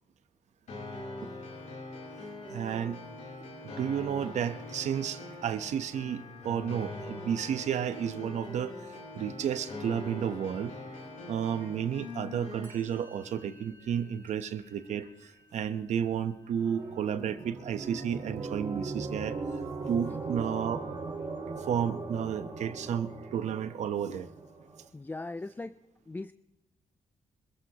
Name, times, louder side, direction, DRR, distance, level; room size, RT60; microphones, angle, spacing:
sound 1, 0.7-12.7, left 2 dB, 80° left, 4.7 m, -43 dB
voice 1, 2.5-3.0 3.4-3.5 3.8-8.8 9.1-10.8 11.3-19.4 19.9-20.9 21.7-24.3, right 8 dB, 80° right, 11 dB, 1.0 m, -32 dB
Musical instrument, 12.6-19.9, left 1 dB, 25° right, 6.1 m, -62 dB
sound 2, 16.6-24.9, right 3 dB, 50° right, 4.0 m, -39 dB
voice 2, 24.9-25.8 26.1-26.3, left 2 dB, 15° left, 13 dB, 0.4 m, -38 dB
26.5 x 15.5 x 3.0 m, 0.97 s
cardioid pair, 95°, 12 cm